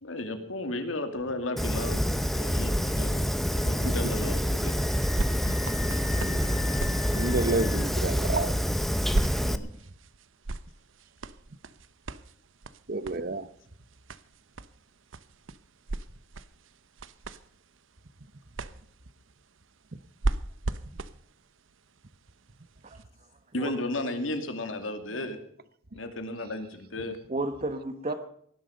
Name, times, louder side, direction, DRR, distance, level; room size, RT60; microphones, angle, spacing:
voice 1, 0.0-3.3 3.5-4.7 5.4-5.6 9.4-9.7 23.5-25.4 25.9-27.2, left 2 dB, 85° left, 8 dB, 2.5 m, -34 dB
Fire, 1.6-9.6, equal, ahead, 0.8 m, -27 dB
sound 1, 4.2-23.0 23.7-23.8, right 2 dB, 80° right, 0.9 m, -38 dB
Screaming, 4.6-8.0, left 7 dB, 45° left, 1.4 m, -42 dB
voice 2, 6.1-8.5 12.9-13.5, right 2 dB, 50° right, 15 dB, 1.0 m, -31 dB
voice 3, 22.8-23.3 23.5-23.8 25.2-25.3 27.3-28.1, right 2 dB, 35° right, 7 dB, 1.3 m, -33 dB
18.0 x 11.5 x 5.3 m, 0.66 s
head